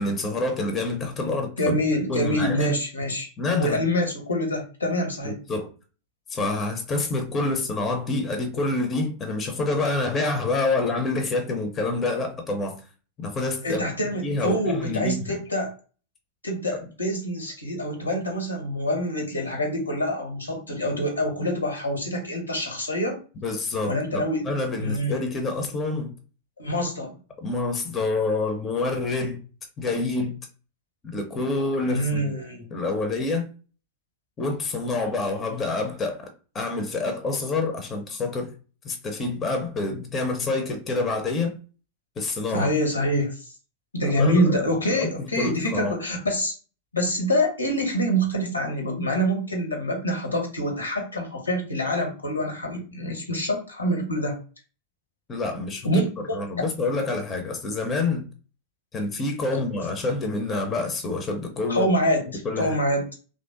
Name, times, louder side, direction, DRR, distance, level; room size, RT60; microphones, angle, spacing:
voice 1, 0.0-1.7 2.1-2.8 3.4-3.8 5.2-5.7 6.3-12.8 13.2-15.4 23.4-26.1 27.4-29.4 29.8-30.4 31.0-32.4 32.7-33.5 34.4-36.3 36.5-38.5 38.8-41.6 42.2-42.7 44.1-45.9 55.3-56.1 56.3-58.3 58.9-61.9 62.4-62.8, left 3 dB, 25° left, 0.6 m, -27 dB
voice 2, 1.6-3.3 3.6-5.4 13.6-15.7 16.4-23.2 23.9-24.5 24.8-25.2 26.6-27.2 31.9-32.7 42.5-43.5 43.9-46.5 46.9-54.4 55.8-56.7 59.5-59.6 61.7-63.0, equal, 80° left, 0.9 m, -26 dB
3.2 x 2.5 x 2.6 m
figure-of-eight pair, 90°, 0 cm